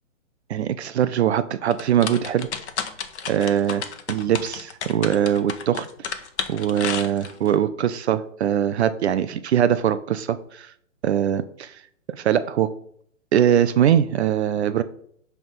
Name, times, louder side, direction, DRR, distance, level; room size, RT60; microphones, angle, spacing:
voice 1, 0.5-2.5 3.3-6.1 6.5-10.7 11.0-11.8 12.1-12.7 13.3-14.8, right 9 dB, 60° right, 13 dB, 0.6 m, -22 dB
sound 1, 1.7-7.5, left 7 dB, 60° left, 1.1 m, -32 dB
10.5 x 3.6 x 5.4 m, 0.64 s
hypercardioid pair, 140°, 39 cm